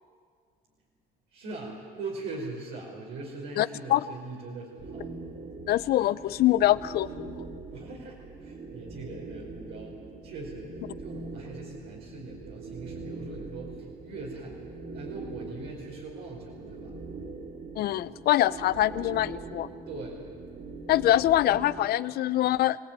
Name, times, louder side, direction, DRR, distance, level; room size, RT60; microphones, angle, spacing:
voice 1, 1.3-5.1 7.7-10.7 11.0-14.5 14.9-16.9 19.9-20.3, right 3 dB, 85° right, -3 dB, 4.9 m, -41 dB
voice 2, 3.6-4.0 5.7-7.4 17.8-19.7 20.9-22.8, left 14 dB, 70° left, 15 dB, 0.7 m, -24 dB
sound 1, 4.8-21.9, right 3 dB, 50° right, 3.5 m, -42 dB
24.0 x 18.5 x 9.1 m, 2.1 s
cardioid pair, 110°, 17 cm